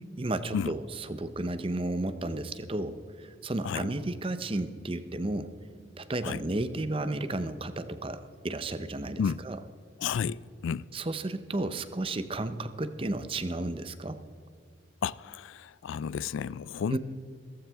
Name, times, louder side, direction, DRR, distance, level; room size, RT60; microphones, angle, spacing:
voice 1, 0.2-5.5 6.0-9.6 10.9-14.2 16.9-17.0, right 2 dB, 30° right, 0.6 m, -33 dB
voice 2, 10.0-10.9 15.0-17.0, left 7 dB, 80° left, 0.3 m, -32 dB
16.0 x 14.5 x 3.5 m
head